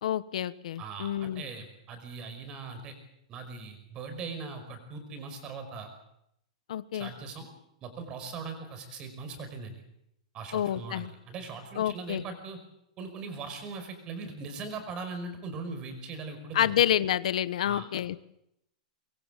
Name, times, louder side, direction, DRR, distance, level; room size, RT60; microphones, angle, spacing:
voice 1, 0.0-1.4 6.7-7.1 10.5-11.1 11.8-12.2 16.5-18.2, left 11 dB, 70° left, 15 dB, 1.2 m, -28 dB
voice 2, 0.8-2.9 3.3-5.9 6.9-7.5 7.8-9.8 10.3-12.6 13.0-16.7 17.6-17.9, right 4 dB, 25° right, 8 dB, 5.4 m, -40 dB
25.0 x 22.5 x 7.7 m, 0.80 s
supercardioid pair, 170°, 4 cm